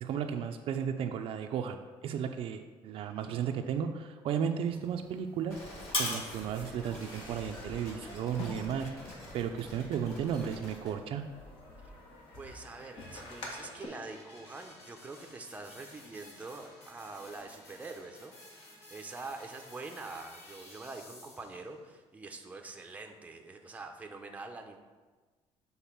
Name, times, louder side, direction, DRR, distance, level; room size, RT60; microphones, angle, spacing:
voice 1, 0.0-5.6 6.0-8.9 9.3-11.2, right 8 dB, 60° right, 6 dB, 0.5 m, -34 dB
sound 1, 4.7-13.9, left 2 dB, 55° left, 1.6 m, -43 dB
sound 2, 5.5-10.9, left 1 dB, 20° left, 2.4 m, -48 dB
sound 3, 10.6-21.7, left 1 dB, 75° left, 1.9 m, -54 dB
voice 2, 12.3-18.3 18.7-24.8, right 3 dB, 15° right, 4 dB, 0.7 m, -45 dB
7.1 x 3.9 x 5.8 m, 1.3 s
cardioid pair, 140°, 11 cm